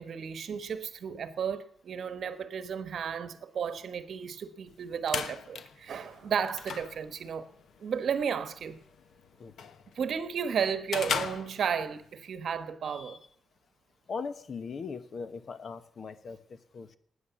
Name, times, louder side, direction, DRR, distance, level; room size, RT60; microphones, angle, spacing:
voice 1, 0.0-7.5 7.8-8.8 9.9-13.2, right 7 dB, 70° right, 1.3 m, -33 dB
sound 1, 4.7-12.1, left 6 dB, 80° left, 1.1 m, -39 dB
voice 2, 12.8-13.2 14.1-17.0, left 5 dB, 55° left, 1.1 m, -40 dB
15.0 x 9.5 x 7.1 m
wide cardioid pair, 130°, 0 cm